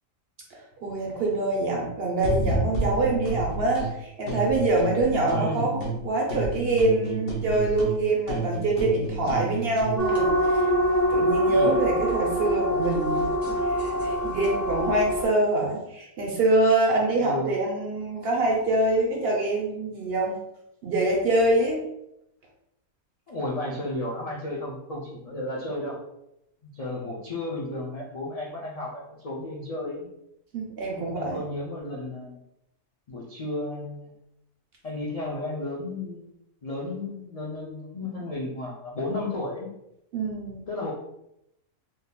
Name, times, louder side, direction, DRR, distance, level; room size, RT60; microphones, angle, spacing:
voice 1, 0.8-10.7 11.1-13.3 13.7-20.4 20.8-21.8 30.5-31.4 40.1-40.6, right 2 dB, 55° right, -2 dB, 0.8 m, -25 dB
sound 1, 2.2-3.9 4.3-6.0 6.3-10.0, right 2 dB, 50° left, 0.8 m, -30 dB
voice 2, 5.3-5.7 11.5-11.8 17.2-17.6 23.3-26.0 26.6-30.1 31.0-32.4 33.1-34.1 34.8-36.3 36.6-39.7 40.7-40.9, left 2 dB, 80° left, -5 dB, 0.3 m, -33 dB
sound 2, 10.0-15.2, equal, ahead, 1.2 m, -24 dB
3.7 x 2.7 x 2.2 m, 0.82 s
omnidirectional pair, 1.5 m